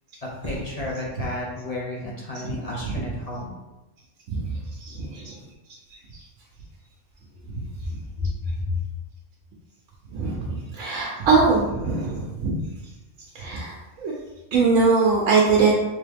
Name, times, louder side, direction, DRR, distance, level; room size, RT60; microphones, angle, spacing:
voice 1, 0.4-3.5 8.2-8.3, left 2 dB, 35° left, -5 dB, 0.8 m, -32 dB
voice 2, 2.4-2.9 4.3-4.4 4.8-5.4 7.9-8.0 10.1-12.6 13.3-14.1 14.5-15.7, right 4 dB, 80° right, -3 dB, 1.0 m, -22 dB
3.6 x 2.9 x 3.4 m, 1.0 s
omnidirectional pair, 1.3 m